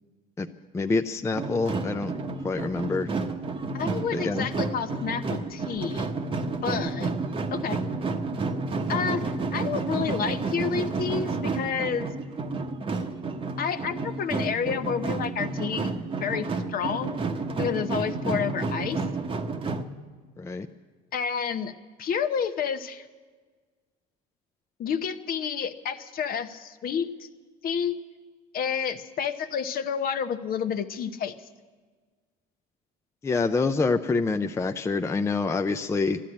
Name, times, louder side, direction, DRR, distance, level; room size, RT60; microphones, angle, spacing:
voice 1, 0.7-2.1 2.4-3.1 4.1-4.5 20.4-20.7 33.2-36.2, left 3 dB, 15° left, 7 dB, 0.5 m, -26 dB
sound 1, 1.4-19.8, right 3 dB, 25° right, 0.9 m, -30 dB
voice 2, 3.7-6.1 6.6-7.1 7.5-7.8 8.9-12.1 13.6-15.9 16.2-17.2 17.6-19.0 21.1-21.7 22.0-23.0 24.8-27.3 27.6-28.0 28.5-31.3, left 7 dB, 45° left, 10 dB, 0.9 m, -29 dB
12.0 x 11.5 x 8.6 m, 1.4 s
supercardioid pair, 100°, 20 cm